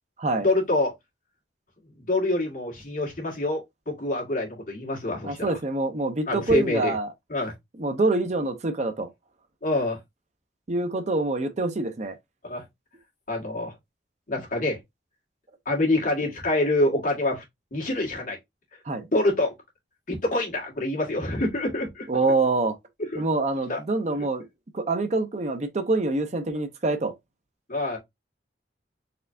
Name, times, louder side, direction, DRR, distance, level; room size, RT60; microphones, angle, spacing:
voice 1, 0.4-0.9 2.0-5.6 6.3-6.9 7.3-7.5 9.6-10.0 12.4-12.7 13.3-13.7 14.3-14.8 15.7-17.4 17.7-18.4 19.1-19.5 20.1-22.1 23.0-23.2 23.7-23.8 27.7-28.0, left 2 dB, 50° left, 1.9 m, -26 dB
voice 2, 5.2-7.1 7.8-9.1 10.7-12.2 18.9-19.1 22.1-22.8 23.1-24.5 24.7-27.1, right 2 dB, 40° right, 0.6 m, -25 dB
4.3 x 3.2 x 2.6 m
head